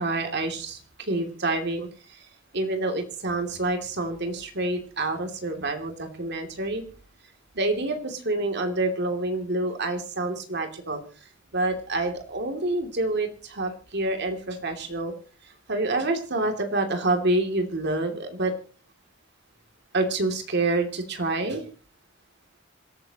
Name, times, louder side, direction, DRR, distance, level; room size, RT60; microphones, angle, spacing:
voice 1, 0.0-1.9 2.5-6.8 7.5-11.0 11.5-15.1 15.7-18.5 19.9-21.6, right 2 dB, 55° right, 4 dB, 2.8 m, -27 dB
26.5 x 13.0 x 3.0 m, 0.37 s
head